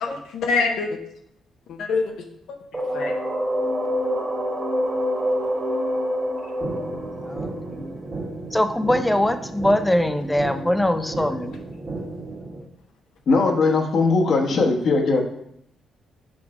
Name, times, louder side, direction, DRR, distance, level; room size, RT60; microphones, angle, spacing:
voice 1, 0.0-0.9 1.7-2.1 2.5-3.1, left 4 dB, 80° left, 3 dB, 0.7 m, -25 dB
sound 1, 2.7-8.5, equal, 20° right, 1.7 m, -26 dB
sound 2, 6.6-12.6, right 3 dB, 45° right, 1.6 m, -34 dB
voice 2, 7.2-7.9 8.5-11.6, left 1 dB, 10° left, 9 dB, 0.5 m, -22 dB
voice 3, 13.3-15.2, left 3 dB, 60° left, 2 dB, 1.0 m, -19 dB
5.3 x 4.8 x 4.7 m, 0.75 s
cardioid pair, 90°, 0 cm